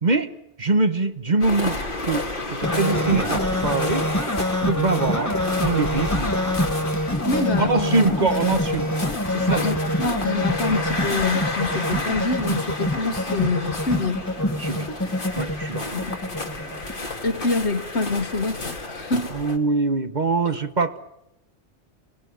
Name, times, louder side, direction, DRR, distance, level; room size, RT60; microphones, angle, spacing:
voice 1, 0.0-4.1 4.6-5.3 5.6-6.6 7.6-8.9 9.3-9.6 14.6-14.9 15.4-16.0 19.3-21.0, right 3 dB, 40° right, 10 dB, 1.2 m, -24 dB
sound 1, 1.4-19.6, left 2 dB, 50° left, 2.5 m, -31 dB
sound 2, 2.6-17.0, left 1 dB, 15° left, 1.6 m, -26 dB
voice 2, 7.2-8.0 9.5-14.3 15.9-16.1 17.2-19.3 20.5-20.6, left 3 dB, 70° left, 8 dB, 2.0 m, -26 dB
27.5 x 19.0 x 9.5 m, 0.86 s
omnidirectional pair, 1.2 m